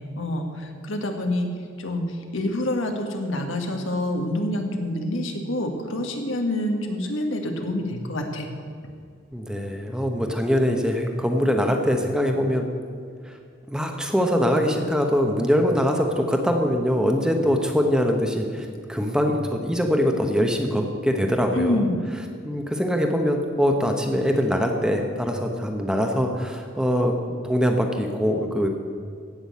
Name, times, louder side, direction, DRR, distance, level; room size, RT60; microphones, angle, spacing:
voice 1, 0.2-1.5 1.8-8.5 21.5-22.0, left 1 dB, 80° left, 4 dB, 1.7 m, -27 dB
voice 2, 9.3-12.7 13.2-13.4 13.7-21.9 22.4-27.1 27.4-28.7, equal, 5° right, 3 dB, 1.0 m, -23 dB
15.5 x 6.2 x 8.4 m, 2.2 s
head